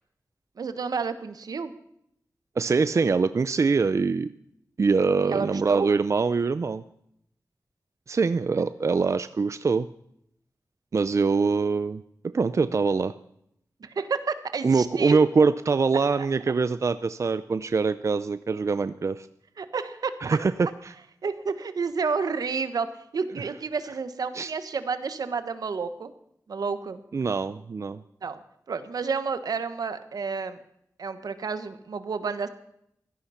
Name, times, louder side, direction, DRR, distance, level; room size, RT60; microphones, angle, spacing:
voice 1, 0.6-1.7 5.2-5.9 13.8-15.2 16.2-16.3 19.6-20.1 21.2-22.9 23.1-26.1 26.5-27.0 28.2-28.4 28.7-30.6 31.0-32.5, right 5 dB, 85° right, 11 dB, 1.2 m, -30 dB
voice 2, 2.6-4.3 4.8-6.8 8.1-9.9 10.9-13.1 14.6-19.3 20.2-20.9 24.3-24.5 27.1-28.0, right 4 dB, 50° right, 13 dB, 0.5 m, -24 dB
16.5 x 13.0 x 5.7 m, 0.75 s
wide cardioid pair, 85°, 6 cm